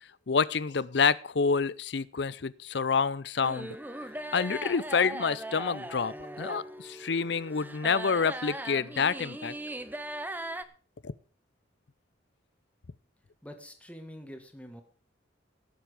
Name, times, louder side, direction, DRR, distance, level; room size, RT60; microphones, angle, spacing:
voice 1, 0.3-3.8 4.3-9.5 11.0-11.1, left 5 dB, 60° left, 19 dB, 0.6 m, -28 dB
sound 1, 3.4-10.6, right 1 dB, 10° right, 0.7 m, -39 dB
voice 2, 13.4-14.8, equal, 5° left, 6 dB, 1.7 m, -45 dB
17.5 x 7.5 x 5.0 m, 0.42 s
head